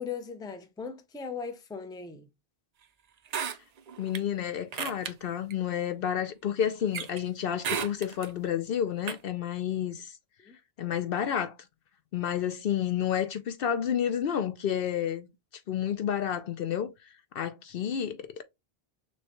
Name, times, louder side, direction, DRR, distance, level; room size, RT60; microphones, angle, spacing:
voice 1, 0.0-2.3 10.4-10.6, left 6 dB, 5° left, 0.3 m, -38 dB
sound 1, 3.3-4.2 4.7-5.1 5.5-5.6 6.9-7.2 7.6-8.3 9.1-9.2, right 7 dB, 55° right, 0.5 m, -33 dB
voice 2, 4.0-10.2 10.8-11.5 12.1-15.3 15.7-17.1 17.3-18.4, left 9 dB, 70° left, 0.7 m, -30 dB
6.3 x 2.2 x 2.9 m
omnidirectional pair, 1.0 m